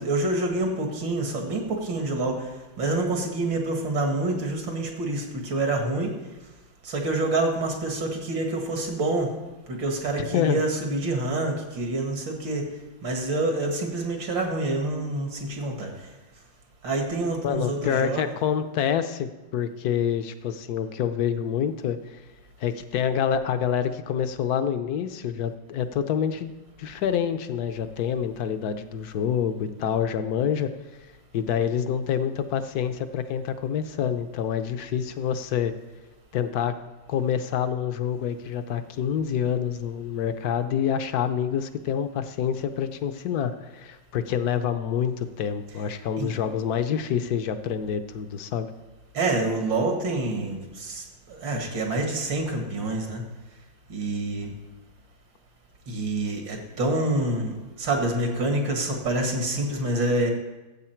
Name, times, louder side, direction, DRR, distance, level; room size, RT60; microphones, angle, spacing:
voice 1, 0.0-2.4 2.8-6.1 6.8-9.3 9.7-12.7 13.0-15.9 16.8-18.2 46.2-46.3 49.1-53.2 53.9-54.5 55.9-60.3, right 2 dB, 75° right, 2 dB, 2.5 m, -27 dB
voice 2, 10.2-10.6 17.4-22.2 22.6-26.5 26.8-30.7 31.3-35.7 36.3-36.7 37.1-48.7, left 8 dB, 65° left, 10 dB, 1.1 m, -27 dB
14.5 x 7.8 x 4.5 m, 1.1 s
omnidirectional pair, 2.0 m